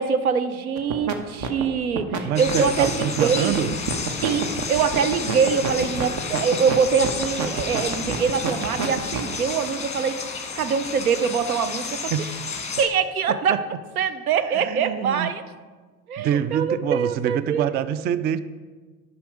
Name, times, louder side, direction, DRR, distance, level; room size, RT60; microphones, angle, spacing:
voice 1, 0.0-3.7 4.2-10.1 10.6-12.1 12.8-13.6 14.0-15.4 16.1-17.7, right 6 dB, 85° right, 11 dB, 0.7 m, -24 dB
sound 1, 0.8-1.1 1.4-9.3, right 6 dB, 45° right, 1.2 m, -27 dB
voice 2, 2.2-3.7 12.1-12.3 13.5-13.6 14.4-15.3 16.2-18.4, right 9 dB, 25° right, 14 dB, 0.3 m, -25 dB
sound 2, 2.4-12.9, left 5 dB, 15° left, 1.5 m, -32 dB
10.0 x 5.9 x 4.9 m, 1.4 s
figure-of-eight pair, 70°, 42 cm